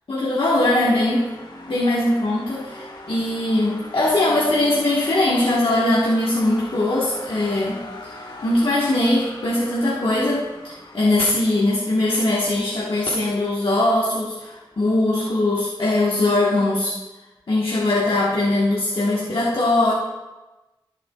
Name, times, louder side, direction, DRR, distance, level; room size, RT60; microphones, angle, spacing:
voice 1, 0.1-1.3 1.7-17.0 17.5-19.9, left 1 dB, 70° left, -7 dB, 1.4 m, -21 dB
sound 1, 0.6-15.4, left 2 dB, 50° left, 1.6 m, -42 dB
14.5 x 7.6 x 2.4 m, 1.1 s
wide cardioid pair, 60°, 9 cm